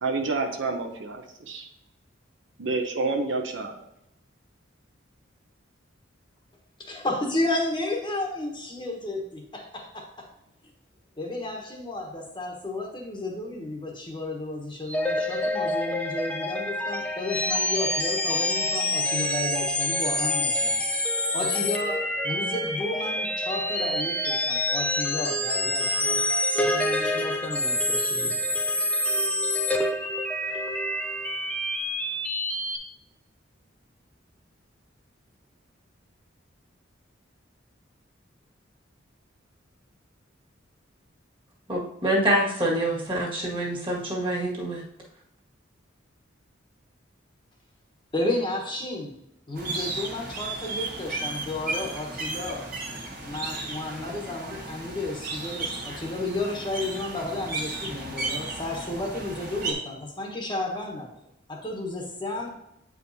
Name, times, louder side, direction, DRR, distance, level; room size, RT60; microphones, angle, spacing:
voice 1, 0.0-1.7 2.6-3.7, right 3 dB, 70° right, 4 dB, 0.8 m, -28 dB
voice 2, 6.8-10.3 11.2-21.0 21.3-26.2 26.6-28.9 48.1-49.1 49.5-52.6 53.2-61.1 61.5-62.6, left 2 dB, 25° left, 0 dB, 1.2 m, -32 dB
sound 1, 14.9-32.8, left 1 dB, 5° left, 0.5 m, -27 dB
voice 3, 41.7-44.8, right 1 dB, 25° right, -3 dB, 1.8 m, -26 dB
sound 2, 49.5-59.7, right 3 dB, 50° right, 1.6 m, -34 dB
8.7 x 5.0 x 2.7 m, 0.83 s
head